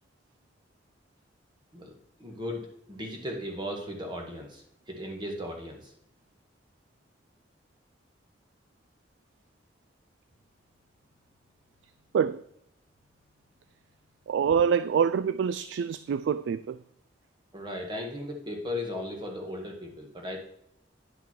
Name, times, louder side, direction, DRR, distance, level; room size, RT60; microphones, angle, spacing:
voice 1, 2.2-5.9 17.5-20.4, left 1 dB, 25° right, 1.8 m, -36 dB
voice 2, 14.3-16.8, right 7 dB, 80° right, 0.3 m, -26 dB
10.5 x 5.8 x 4.6 m
head